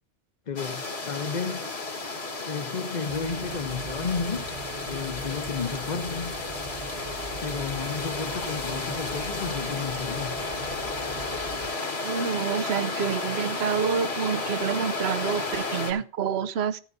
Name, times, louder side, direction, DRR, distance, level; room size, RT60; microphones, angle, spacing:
voice 1, 0.5-1.7 2.5-4.5 4.8-6.3 7.4-10.4, left 5 dB, 45° left, 0.8 m, -32 dB
sound 1, 0.6-15.9, left 3 dB, 75° left, 1.9 m, -33 dB
sound 2, 3.1-11.7, right 3 dB, 45° right, 1.2 m, -41 dB
voice 2, 12.0-16.8, right 7 dB, 75° right, 0.9 m, -28 dB
14.0 x 11.0 x 2.6 m
omnidirectional pair, 1.1 m